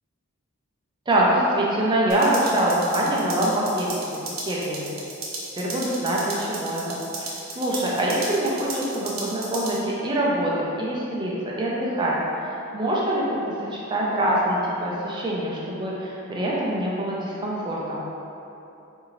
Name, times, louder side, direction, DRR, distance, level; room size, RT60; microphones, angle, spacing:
voice 1, 1.1-3.9 4.2-4.9 5.6-12.2 12.4-18.1, right 1 dB, 20° right, -5 dB, 0.4 m, -24 dB
sound 1, 2.1-9.8, right 3 dB, 65° right, 0.6 m, -35 dB
3.8 x 2.6 x 3.0 m, 2.9 s
head